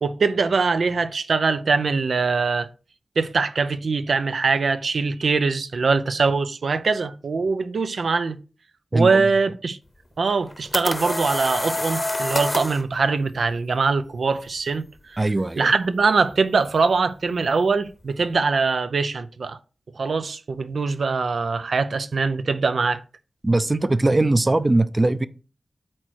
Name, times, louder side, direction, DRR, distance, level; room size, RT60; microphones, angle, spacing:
voice 1, 0.0-2.7 3.2-8.4 8.9-9.8 10.2-15.2 15.6-19.6 20.0-23.0, right 4 dB, 85° right, 0.6 m, -22 dB
voice 2, 8.9-9.2 15.2-15.7 23.4-25.3, right 2 dB, 30° right, 0.5 m, -20 dB
sound 1, 10.3-12.8, left 1 dB, 25° left, 0.8 m, -26 dB
8.6 x 3.0 x 6.3 m
wide cardioid pair, 105°, 0 cm